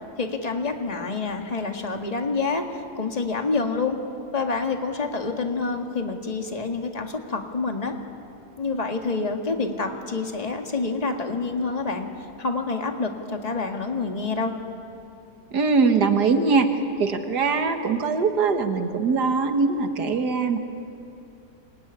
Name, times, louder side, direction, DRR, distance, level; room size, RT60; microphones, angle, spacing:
voice 1, 0.2-2.6 3.0-4.0 4.3-8.0 8.6-12.1 12.4-14.5, left 4 dB, 25° left, 4 dB, 1.8 m, -27 dB
voice 2, 15.5-16.7 17.0-20.6, right 4 dB, 75° right, 6 dB, 2.0 m, -22 dB
26.5 x 21.5 x 9.9 m, 2.7 s
omnidirectional pair, 1.8 m